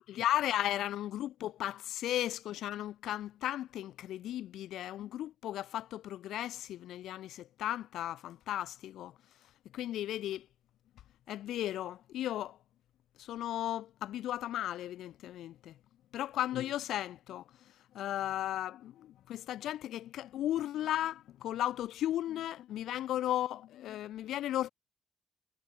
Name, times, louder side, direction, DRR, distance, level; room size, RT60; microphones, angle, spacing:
voice 1, 0.0-9.1 9.7-10.5 11.3-12.6 13.2-15.7 16.1-17.4 17.9-24.7, left 12 dB, 80° left, 2.1 m, -35 dB
cardioid pair, 90°, 0 cm